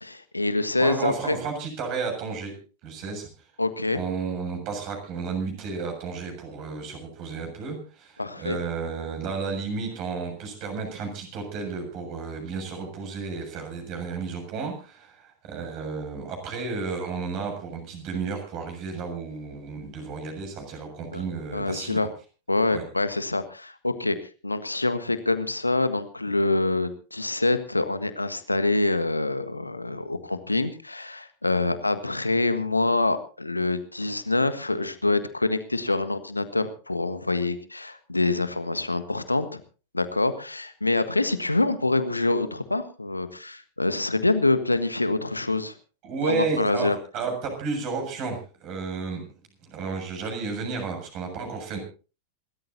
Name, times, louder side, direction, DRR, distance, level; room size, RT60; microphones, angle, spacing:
voice 1, 0.0-1.4 3.6-4.0 8.2-8.6 21.1-21.2 21.5-22.1 22.5-24.1 24.4-39.6 39.9-45.7 46.2-47.0, left 2 dB, 85° left, 11 dB, 1.5 m, -26 dB
voice 2, 0.8-2.5 2.8-3.3 3.9-22.0 22.7-22.8 46.0-49.2 49.6-51.8, right 4 dB, 40° right, 3 dB, 7.1 m, -32 dB
27.5 x 13.5 x 2.8 m, 0.36 s
figure-of-eight pair, 90°, 0 cm